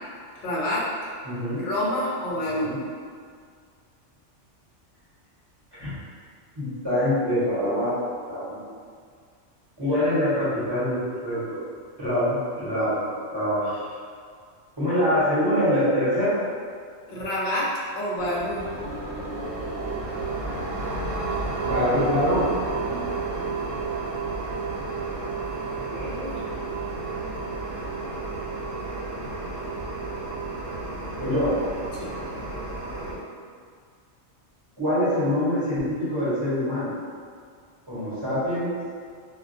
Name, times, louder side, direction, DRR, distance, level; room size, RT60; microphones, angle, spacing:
voice 1, 0.4-0.9 1.6-2.7 17.1-18.7 25.5-26.4 32.0-32.1, left 1 dB, 60° left, -5 dB, 0.6 m, -28 dB
voice 2, 1.2-1.6 2.4-2.8 5.8-5.9 6.6-7.9 8.3-8.6 9.8-11.6 12.0-13.9 14.8-16.3 21.6-22.4 22.8-23.5 31.2-31.6 34.8-36.9 37.9-38.7, equal, 25° right, -12 dB, 0.9 m, -25 dB
sound 1, 18.2-33.2, right 3 dB, 75° right, 0.9 m, -31 dB
2.2 x 2.2 x 2.6 m, 2.1 s
omnidirectional pair, 1.3 m